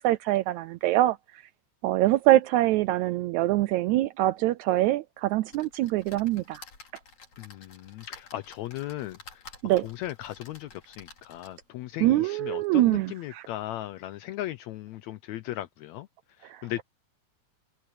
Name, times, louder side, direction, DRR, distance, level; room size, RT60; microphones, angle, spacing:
voice 1, 0.0-1.4 1.8-6.6 9.6-9.9 12.0-13.5 16.4-16.8, right 15 dB, 80° right, 1.7 m, -24 dB
sound 1, 5.5-11.7 12.3-12.4 12.6-12.7, left 4 dB, 60° left, 5.5 m, -51 dB
voice 2, 7.4-9.4 9.8-16.1 16.6-16.8, left 14 dB, 75° left, 1.7 m, -37 dB
omnidirectional pair, 3.7 m